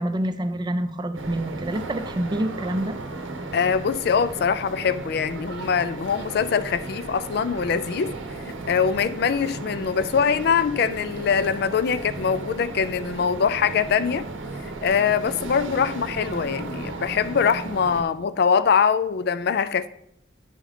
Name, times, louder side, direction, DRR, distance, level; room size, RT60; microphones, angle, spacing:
voice 1, 0.0-3.0, right 1 dB, 20° right, 9 dB, 0.4 m, -27 dB
sound 1, 1.2-18.0, right 3 dB, 80° right, 0.8 m, -35 dB
voice 2, 3.5-8.1 8.7-14.2 14.8-19.9, left 6 dB, 55° left, 14 dB, 0.4 m, -23 dB
10.0 x 3.8 x 4.9 m, 0.76 s
head